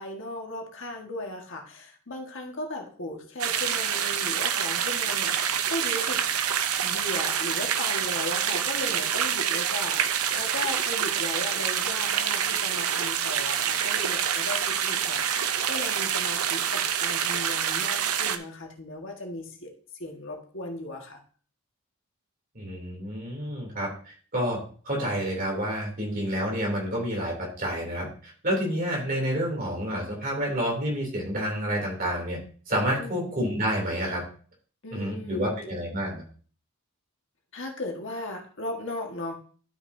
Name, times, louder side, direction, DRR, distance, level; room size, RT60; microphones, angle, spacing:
voice 1, 0.0-6.2 6.8-19.7 20.0-21.2 33.0-33.3 34.8-35.6 37.5-39.4, left 2 dB, 55° left, 1 dB, 1.6 m, -37 dB
sound 1, 3.4-18.4, right 8 dB, 85° right, 0.7 m, -27 dB
voice 2, 22.5-32.4 32.7-34.2 34.9-36.2, equal, 40° right, -1 dB, 3.0 m, -29 dB
12.0 x 6.0 x 2.7 m, 0.43 s
head